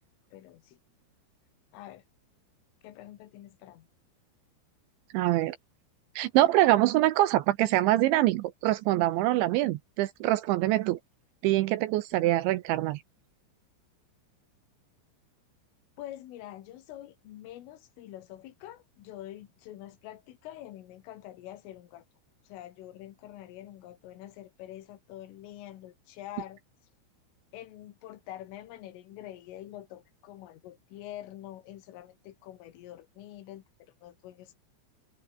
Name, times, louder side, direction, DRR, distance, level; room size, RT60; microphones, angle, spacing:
voice 1, 0.3-0.8 1.7-2.0 2.8-3.9 9.3-9.4 16.0-22.1 22.5-26.6 27.5-33.6 34.0-34.6, left 13 dB, 75° left, 4.2 m, -46 dB
voice 2, 5.1-5.6 6.2-11.0 11.4-13.0, right 16 dB, 75° right, 2.8 m, -24 dB
omnidirectional pair, 5.9 m